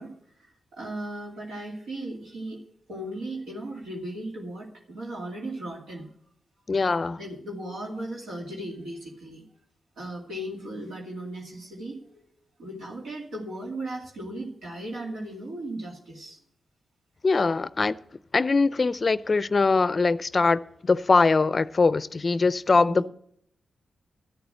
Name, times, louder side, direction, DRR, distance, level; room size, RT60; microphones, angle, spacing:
voice 1, 0.0-2.6 2.9-6.1 7.2-9.4 10.0-12.3 12.6-16.4 22.8-23.1, right 1 dB, 85° right, 2.2 m, -37 dB
voice 2, 6.7-7.2 17.2-18.0 18.3-23.1, left 4 dB, 45° left, 0.4 m, -22 dB
12.5 x 7.0 x 7.8 m
supercardioid pair, 45°, 0 cm